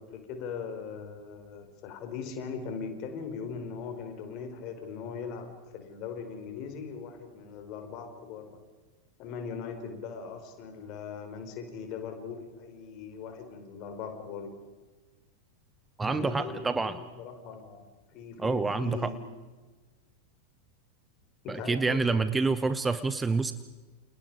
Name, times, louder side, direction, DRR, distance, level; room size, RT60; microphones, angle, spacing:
voice 1, 0.0-8.6 9.2-14.6 16.1-19.3 21.4-22.4, left 6 dB, 40° left, 5 dB, 5.0 m, -40 dB
voice 2, 16.0-17.0 18.4-19.1 21.5-23.5, right 4 dB, 10° right, 13 dB, 1.0 m, -27 dB
29.5 x 29.5 x 5.0 m, 1.3 s
figure-of-eight pair, 90°, 0 cm